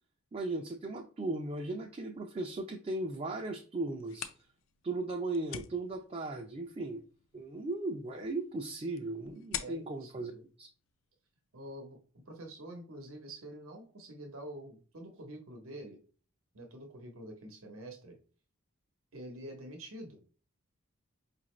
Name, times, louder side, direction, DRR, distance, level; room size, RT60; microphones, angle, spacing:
voice 1, 0.3-4.3 4.8-7.0 7.3-10.3 10.6-10.7, right 2 dB, 30° right, 2 dB, 0.4 m, -37 dB
sound 1, 3.9-11.4, left 9 dB, 75° left, 0.4 m, -48 dB
voice 2, 9.6-10.4 11.5-12.0 12.3-16.0 16.5-18.2 19.1-20.2, right 1 dB, 85° right, 3 dB, 0.9 m, -47 dB
4.9 x 2.5 x 3.1 m, 0.39 s
head